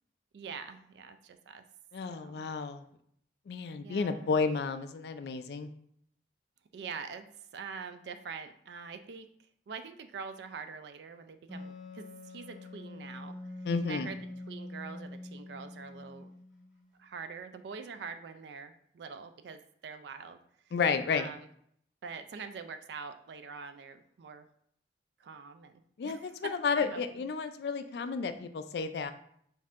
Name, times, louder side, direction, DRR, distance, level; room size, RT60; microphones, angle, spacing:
voice 1, 0.3-1.6 2.1-2.4 3.8-4.4 6.7-7.3 7.5-9.3 9.7-13.4 13.8-16.3 17.0-20.4 20.7-20.8 21.1-21.5 22.0-24.5 25.2-27.2, right 5 dB, 75° right, 9 dB, 0.3 m, -44 dB
voice 2, 1.9-2.8 3.5-5.7 13.7-14.1 20.7-21.3 26.0-29.1, left 5 dB, 70° left, 9 dB, 0.3 m, -32 dB
Wind instrument woodwind instrument, 11.5-16.9, left 2 dB, 5° right, 1.1 m, -45 dB
5.3 x 2.7 x 2.4 m, 0.67 s
head